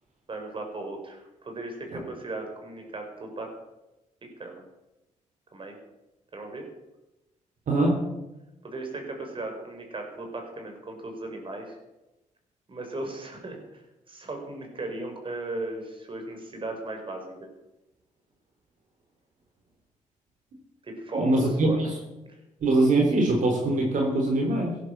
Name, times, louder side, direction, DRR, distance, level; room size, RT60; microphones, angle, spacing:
voice 1, 0.3-3.5 4.2-4.6 5.5-5.8 6.3-6.6 8.6-11.8 12.7-17.5 20.8-21.9 22.3-22.4, right 2 dB, 40° right, 3 dB, 5.2 m, -37 dB
voice 2, 7.7-8.0 21.1-21.7 22.6-24.7, right 2 dB, 70° right, 1 dB, 3.6 m, -22 dB
16.5 x 11.5 x 6.7 m, 0.99 s
cardioid pair, 85°, 14 cm